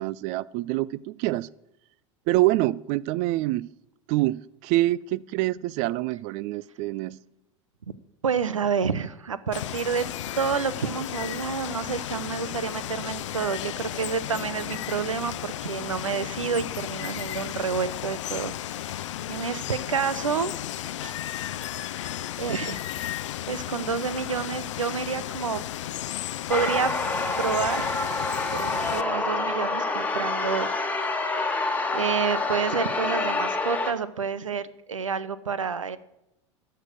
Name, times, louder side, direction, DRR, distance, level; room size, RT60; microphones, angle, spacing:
voice 1, 0.0-1.5 2.3-3.7 4.1-7.2, right 17 dB, 45° right, 22 dB, 0.4 m, -26 dB
voice 2, 8.2-10.1 10.4-18.9 19.3-20.5 21.0-21.1 22.4-22.9 23.5-25.6 26.5-26.9 27.4-27.9 28.5-31.0 31.9-36.0, right 6 dB, 85° right, 16 dB, 0.7 m, -29 dB
Water, 9.5-29.0, left 12 dB, 70° left, 0.5 m, -34 dB
sound 1, 26.5-33.9, left 3 dB, 10° left, 1.4 m, -27 dB
12.5 x 6.8 x 6.2 m, 0.88 s
hypercardioid pair, 85°, 16 cm